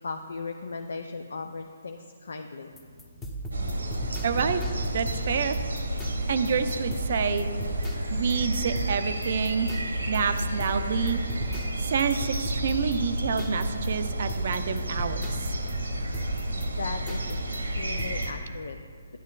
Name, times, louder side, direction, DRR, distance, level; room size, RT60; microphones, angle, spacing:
voice 1, 0.0-2.7 16.6-18.8, left 4 dB, 70° left, 5 dB, 0.4 m, -37 dB
sound 1, 2.7-18.4, equal, 10° left, 0.8 m, -38 dB
sound 2, 3.5-18.3, right 1 dB, 85° right, 1.0 m, -31 dB
voice 2, 4.2-4.6 4.9-5.6 6.3-7.5 8.1-9.7 10.1-11.2 11.5-15.5, right 6 dB, 50° right, 9 dB, 0.5 m, -28 dB
11.0 x 9.2 x 2.4 m, 2.1 s
figure-of-eight pair, 145°, 0 cm